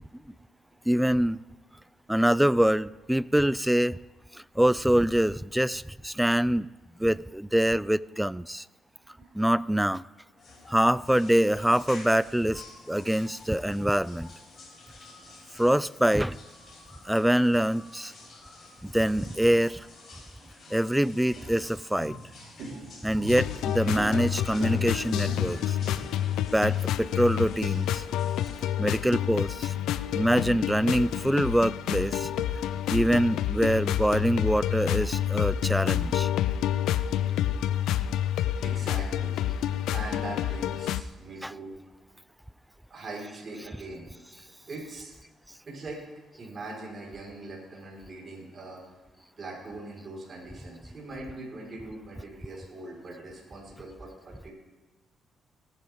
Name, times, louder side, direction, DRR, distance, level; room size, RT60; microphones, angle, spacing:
voice 1, 0.9-1.4 2.1-4.0 4.3-6.7 7.0-8.7 9.3-10.0 10.7-14.3 15.6-16.4 17.1-18.1 18.8-19.9 20.7-22.2 23.0-25.8 26.5-28.0 28.8-29.7 30.1-32.3 32.9-36.3 41.4-41.6 43.7-43.8, right 1 dB, 5° right, 20 dB, 0.3 m, -25 dB
voice 2, 9.1-9.5 38.6-41.7 42.9-44.1 44.7-45.1 45.7-46.0 46.4-48.8 49.4-54.5, right 2 dB, 40° right, -3 dB, 4.7 m, -41 dB
sound 1, 10.4-28.7, left 3 dB, 50° left, 5.3 m, -50 dB
sound 2, 20.4-21.0 21.4-26.5, right 1 dB, 75° right, 3.8 m, -40 dB
sound 3, 23.3-41.0, left 11 dB, 85° left, 0.4 m, -28 dB
18.0 x 10.0 x 3.7 m, 1.2 s
cardioid pair, 90°, 0 cm